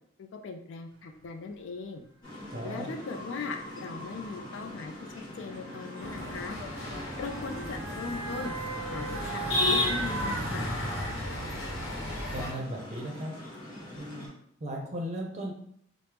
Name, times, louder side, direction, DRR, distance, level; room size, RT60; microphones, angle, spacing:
voice 1, 0.2-2.0 2.6-4.9 5.3-6.6 7.2-8.5 8.9-10.7, left 4 dB, 65° left, 5 dB, 0.3 m, -39 dB
Motor vehicle (road) / Siren, 1.2-1.3 2.3-2.5 3.6-11.2 11.6-11.7, right 4 dB, 80° right, 0.5 m, -40 dB
sound 1, 2.2-14.3, left 1 dB, 20° left, 1.3 m, -44 dB
voice 2, 2.5-2.9 12.3-13.3 14.0-14.3 14.6-15.5, equal, 35° right, 0 dB, 0.5 m, -36 dB
sound 2, 6.0-12.5, left 1 dB, 80° left, 0.9 m, -33 dB
3.0 x 2.0 x 3.3 m, 0.68 s
head